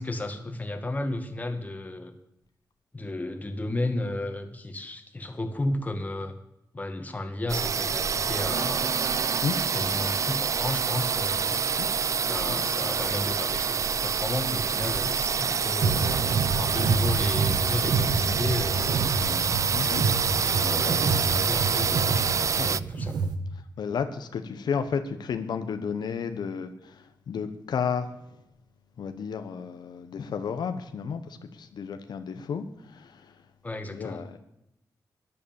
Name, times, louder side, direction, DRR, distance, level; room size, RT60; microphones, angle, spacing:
voice 1, 0.0-2.1 2.9-6.4 6.7-9.0 9.7-11.6 12.2-16.1 16.6-19.6 19.9-22.3 22.6-23.3 33.6-34.2, left 2 dB, 20° left, 6 dB, 2.0 m, -33 dB
sound 1, 7.5-22.8, right 6 dB, 45° right, 0.4 m, -27 dB
sound 2, 15.8-23.4, right 4 dB, 75° right, 1.6 m, -28 dB
voice 2, 19.7-20.1 22.6-22.7 23.8-28.1 29.0-33.3 33.9-34.4, left 6 dB, 75° left, 8 dB, 1.2 m, -32 dB
14.0 x 10.5 x 7.2 m, 0.85 s
wide cardioid pair, 100°, 7 cm